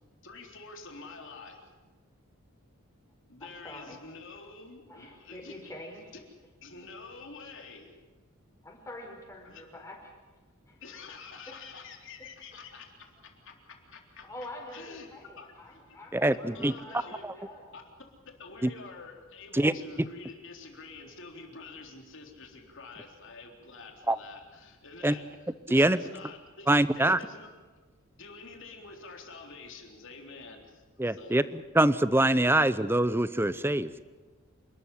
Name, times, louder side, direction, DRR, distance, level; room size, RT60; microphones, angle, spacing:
voice 1, 0.2-1.6 3.3-5.6 6.6-7.9 9.4-9.6 10.8-13.5 13.9-14.3 14.7-15.1 15.4-16.0 16.3-17.2 17.7-17.8 18.4-27.5 28.2-31.5, left 4 dB, 55° left, 2 dB, 3.7 m, -47 dB
voice 2, 3.4-4.0 4.2-4.3 4.9-6.1 8.6-10.1 10.7-10.8 11.5-11.6 14.2-17.0 17.4-17.7, left 1 dB, 15° left, 1 dB, 4.8 m, -46 dB
voice 3, 16.1-16.7 18.6-18.7 19.5-19.7 24.1-24.2 25.0-25.2 25.7-26.0 26.7-27.2 31.0-33.9, right 1 dB, 10° right, 15 dB, 0.7 m, -24 dB
28.0 x 13.0 x 10.0 m, 1.3 s
head